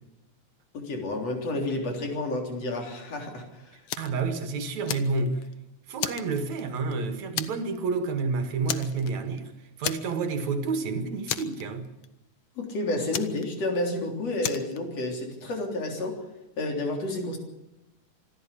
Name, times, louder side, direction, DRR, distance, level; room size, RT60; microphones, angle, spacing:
voice 1, 0.7-3.8 12.6-16.2 16.6-17.4, left 2 dB, 55° left, 4.6 m, -30 dB
Fire, 3.9-4.2 4.6-5.5 6.0-6.9 7.4-7.8 8.1-8.2 8.7-9.4 9.8-10.4 10.7-10.8 11.3-12.1 13.1-13.9 14.4-14.8, left 10 dB, 75° left, 1.2 m, -33 dB
voice 2, 4.0-5.4 5.9-9.5 9.8-11.9, right 4 dB, 70° right, 2.9 m, -29 dB
25.5 x 13.0 x 8.5 m
omnidirectional pair, 3.4 m